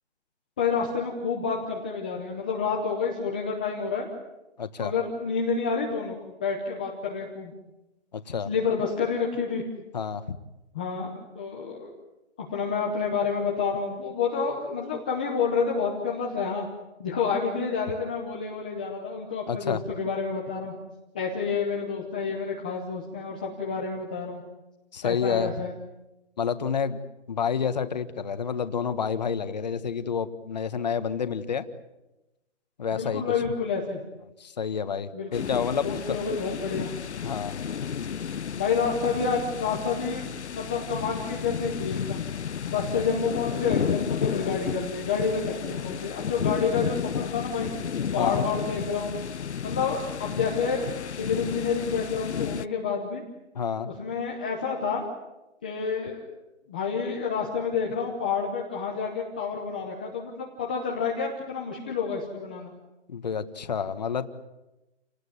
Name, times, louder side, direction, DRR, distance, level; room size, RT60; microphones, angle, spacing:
voice 1, 0.6-4.1 4.8-6.1 6.4-7.5 8.5-9.6 10.7-11.9 12.5-16.7 17.0-20.7 21.1-24.4 25.0-25.7 32.9-34.0 35.1-35.5 35.8-36.9 38.5-40.2 40.5-42.2 42.6-47.7 48.1-49.2 49.6-53.2 54.0-55.0 55.6-56.3 56.7-62.7, left 5 dB, 10° left, -2 dB, 0.8 m, -29 dB
voice 2, 4.6-4.9 8.1-8.5 9.9-10.4 19.5-19.8 24.9-25.6 26.4-27.0 27.3-31.7 32.8-33.5 34.4-36.2 37.2-37.6 48.2-48.4 53.5-53.9 63.1-64.3, left 6 dB, 35° left, 11 dB, 1.5 m, -29 dB
sound 1, 35.3-52.7, left 7 dB, 70° left, 0.9 m, -32 dB
29.5 x 19.0 x 9.6 m, 0.99 s
hypercardioid pair, 175°, 35 cm